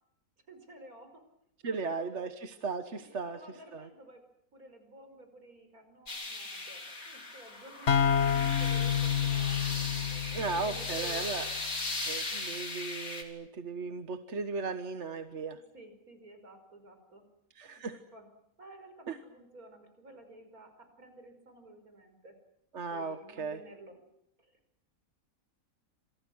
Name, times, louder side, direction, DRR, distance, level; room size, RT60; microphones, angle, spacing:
voice 1, 0.5-1.2 1.6-2.3 3.0-4.3 4.5-11.5 15.3-17.2 17.8-18.3 18.6-22.4 22.9-24.0 24.4-24.6, right 1 dB, 85° right, 7 dB, 5.8 m, -52 dB
voice 2, 1.6-3.4 3.7-3.8 10.3-11.4 12.1-15.6 17.6-18.0 19.1-19.2 22.7-23.6, right 4 dB, 55° right, 9 dB, 1.6 m, -36 dB
sound 1, 6.1-13.2, left 2 dB, 75° left, 4.0 m, -38 dB
sound 2, 7.9-11.5, left 8 dB, 55° left, 1.6 m, -29 dB
28.5 x 27.5 x 6.3 m, 0.78 s
omnidirectional pair, 1.5 m